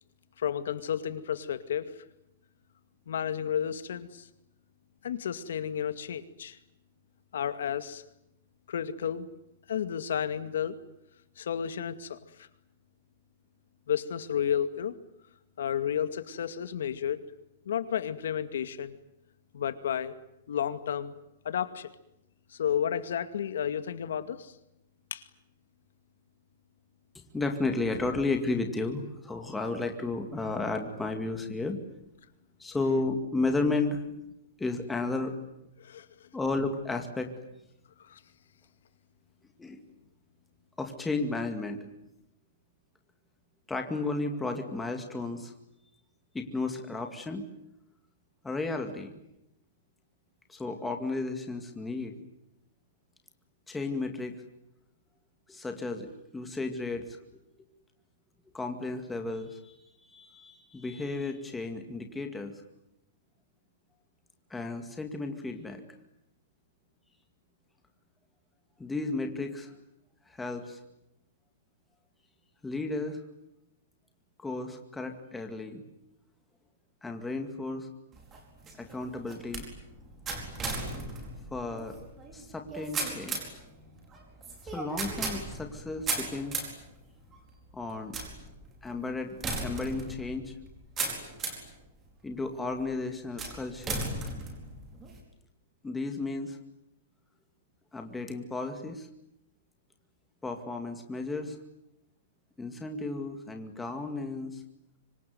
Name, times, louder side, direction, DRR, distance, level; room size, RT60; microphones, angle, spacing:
voice 1, 0.4-2.0 3.1-4.3 5.0-6.6 7.3-8.0 8.7-9.3 9.7-10.8 11.4-12.5 13.9-14.9 15.6-17.2 17.7-19.0 19.5-20.1 20.5-21.1 21.4-21.9 22.5-24.5 25.1-25.2 35.8-36.1 38.1-38.2, left 9 dB, 75° left, 12 dB, 2.2 m, -32 dB
voice 2, 27.3-31.8 32.6-34.0 34.6-35.3 36.3-37.3 39.6-39.8 40.8-41.9 43.7-45.5 46.3-47.5 48.4-49.1 50.5-52.1 53.7-54.4 55.5-57.1 58.5-62.6 64.5-65.8 68.8-69.7 70.3-70.8 72.6-73.2 74.4-75.8 77.0-77.9 78.8-79.6 81.5-82.0 82.3-83.4 84.6-86.6 87.7-88.2 88.8-90.5 92.2-94.2 95.8-96.6 97.9-99.1 100.4-101.6 102.6-104.6, left 3 dB, 5° left, 5 dB, 2.2 m, -33 dB
sound 1, 78.1-91.7 92.3-92.8 93.4-95.2, right 3 dB, 15° right, 4.7 m, -37 dB
25.5 x 25.0 x 9.4 m, 0.82 s
supercardioid pair, 180°, 0 cm